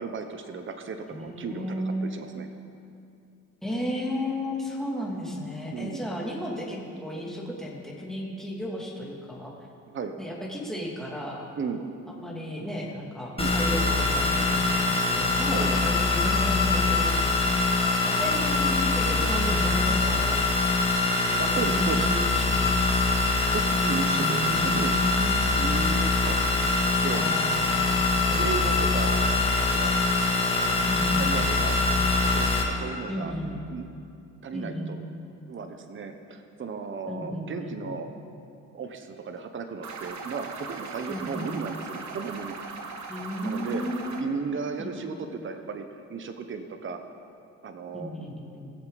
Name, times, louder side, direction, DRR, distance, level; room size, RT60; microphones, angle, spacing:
voice 1, 0.0-2.5 5.7-6.1 9.9-10.1 11.5-11.9 13.4-13.6 15.5-15.7 21.4-22.1 23.3-25.1 25.5-26.4 27.0-27.3 28.3-29.9 30.3-30.8 31.1-31.8 32.1-33.3 33.7-33.8 34.4-35.0 35.5-38.1 38.7-42.6 43.4-43.8 44.2-47.0 47.6-48.1, right 5 dB, 40° right, 6 dB, 1.0 m, -35 dB
voice 2, 1.1-2.4 3.6-9.5 10.2-11.5 12.1-17.3 18.0-20.4 21.3-22.8 24.1-25.5 27.1-28.7 30.9-31.7 33.1-33.6 34.5-35.0 37.1-38.0 41.1-41.6 43.1-44.2 44.8-45.4 47.9-48.7, equal, ahead, -4 dB, 2.7 m, -34 dB
sound 1, 13.4-32.6, left 3 dB, 20° left, 1.9 m, -24 dB
sound 2, 39.8-44.2, right 4 dB, 70° right, 1.3 m, -39 dB
20.5 x 7.4 x 4.1 m, 2.6 s
cardioid pair, 90°, 30 cm